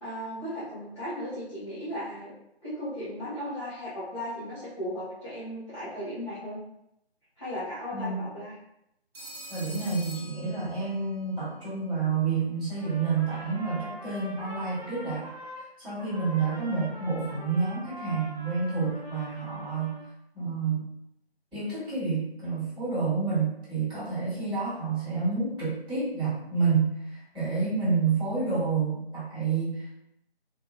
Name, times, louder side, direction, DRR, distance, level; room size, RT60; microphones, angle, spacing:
voice 1, 0.0-2.3 2.6-6.6 7.4-8.5, equal, 25° left, -14 dB, 0.8 m, -36 dB
voice 2, 7.9-8.3 9.5-15.3 15.6-20.0 20.3-20.9 21.5-30.0, right 4 dB, ahead, -32 dB, 1.4 m, -29 dB
Telephone, 9.1-11.2, equal, 60° right, 1.3 m, -44 dB
Trumpet, 12.7-15.7 16.0-20.1, right 1 dB, 35° right, 1.0 m, -43 dB
2.6 x 2.6 x 2.4 m, 0.81 s
figure-of-eight pair, 165°, 32 cm